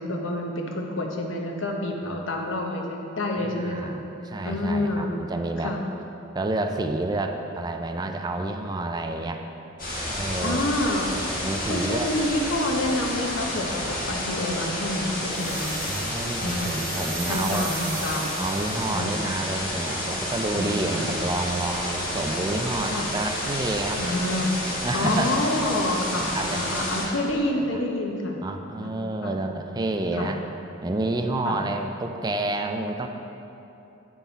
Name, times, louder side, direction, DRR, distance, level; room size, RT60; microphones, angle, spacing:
voice 1, 0.0-3.9 4.4-5.1 5.6-5.8 10.4-11.1 11.7-16.0 16.3-16.8 17.3-18.3 18.9-19.3 20.5-21.2 22.9-23.1 23.9-24.5 24.9-28.4 28.8-28.9 29.2-29.3 30.2-30.3 31.4-31.6, left 1 dB, 80° left, 1 dB, 0.9 m, -28 dB
voice 2, 3.4-5.7 6.3-9.4 10.1-10.6 11.4-12.1 15.8-17.7 18.4-24.0 24.8-25.4 26.1-27.0 27.7-27.8 28.4-30.4 30.8-33.1, right 2 dB, 20° right, 5 dB, 0.4 m, -29 dB
sound 1, 9.8-27.1, left 1 dB, 45° left, 1.7 m, -30 dB
sound 2, 15.3-19.0, right 6 dB, 45° right, 0.8 m, -38 dB
8.3 x 6.0 x 4.1 m, 2.9 s
head